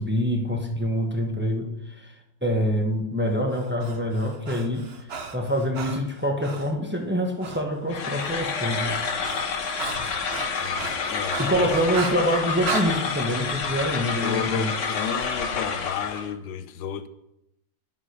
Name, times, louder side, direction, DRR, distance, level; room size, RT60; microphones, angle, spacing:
voice 1, 0.0-2.1 2.4-4.9 5.3-9.1 11.4-14.7, equal, 15° right, 0.3 m, -25 dB
Breathing, 3.5-6.7 7.4-7.6 7.9-12.9, right 4 dB, 55° right, 0.7 m, -35 dB
sound 1, 7.9-16.3, left 5 dB, 50° left, 0.9 m, -29 dB
voice 2, 10.6-11.7 14.2-17.1, left 8 dB, 65° left, 1.3 m, -32 dB
11.0 x 7.3 x 6.5 m
omnidirectional pair, 2.4 m